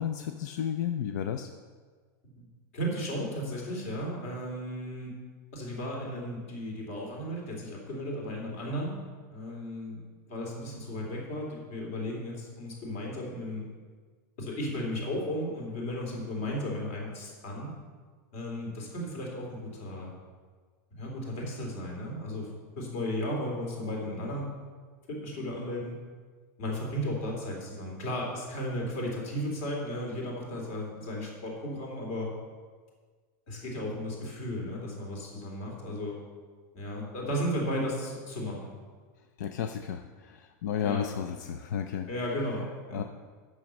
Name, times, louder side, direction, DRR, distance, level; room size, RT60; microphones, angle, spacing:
voice 1, 0.0-1.5 39.4-42.1 42.9-43.0, left 8 dB, 85° left, 7 dB, 0.5 m, -32 dB
voice 2, 2.7-5.1 5.5-9.0 9.3-10.0 10.3-13.7 14.4-17.7 18.3-20.1 21.0-22.5 22.8-24.4 25.1-25.9 26.6-32.3 33.5-36.2 36.7-38.7 40.8-41.0 42.1-43.0, equal, 50° left, -1 dB, 3.0 m, -35 dB
9.0 x 6.2 x 6.4 m, 1.5 s
supercardioid pair, 180°, 9 cm